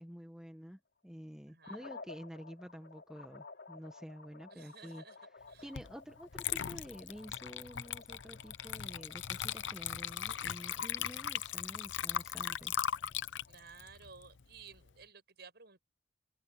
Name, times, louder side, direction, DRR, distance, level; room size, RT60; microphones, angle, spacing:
voice 1, 0.0-5.0 5.6-12.7, equal, 5° right, 1.3 m, -49 dB
voice 2, 1.5-2.0 4.5-5.2 5.5-5.7 13.5-15.8, right 5 dB, 60° right, 7.8 m, -55 dB
sound 1, 1.6-13.9, left 4 dB, 65° left, 3.4 m, -55 dB
Water / Liquid, 5.8-5.9 6.3-14.9, left 9 dB, 85° left, 0.7 m, -38 dB
head